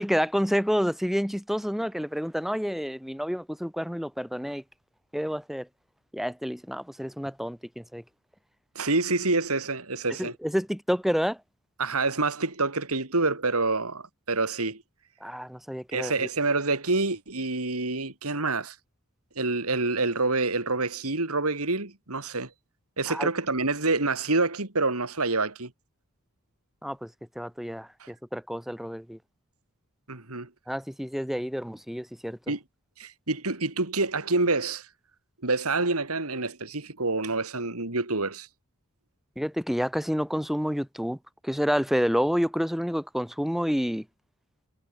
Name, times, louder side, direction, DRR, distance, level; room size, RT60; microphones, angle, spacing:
voice 1, 0.0-4.6 5.1-5.7 6.1-8.0 10.2-11.4 15.2-16.3 23.1-23.3 26.8-27.1 27.4-29.2 30.7-32.4 39.4-41.2 41.4-44.0, equal, ahead, 2.1 m, -29 dB
voice 2, 8.8-10.3 11.8-14.8 15.9-18.8 19.4-22.5 23.0-25.7 28.0-28.1 30.1-30.5 32.5-32.6 33.0-34.9 35.4-38.5, right 3 dB, 80° right, 3.5 m, -27 dB
head